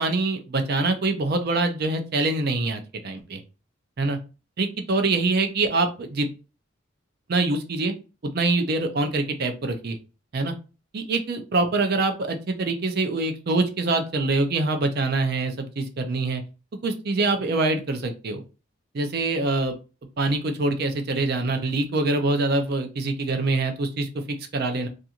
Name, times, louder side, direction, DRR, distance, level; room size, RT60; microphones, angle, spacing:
voice 1, 0.0-3.4 4.0-4.2 4.6-6.3 7.3-7.9 8.3-10.0 10.3-10.5 10.9-16.4 16.8-18.4 18.9-19.7 20.2-24.9, right 2 dB, 55° right, 7 dB, 0.5 m, -24 dB
2.4 x 2.4 x 2.8 m, 0.32 s
head